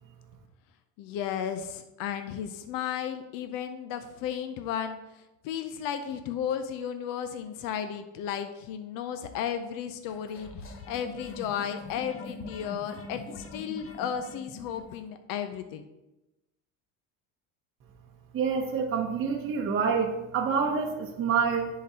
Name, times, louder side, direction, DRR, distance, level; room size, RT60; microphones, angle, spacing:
voice 1, 1.0-5.0 5.4-10.5 10.9-15.8, left 8 dB, 70° left, 8 dB, 0.6 m, -34 dB
sound 1, 10.1-15.0, left 3 dB, 40° left, 1.0 m, -43 dB
voice 2, 18.3-21.7, right 6 dB, 35° right, 1 dB, 0.8 m, -27 dB
10.5 x 3.9 x 2.8 m, 0.97 s
cardioid pair, 120°, 35 cm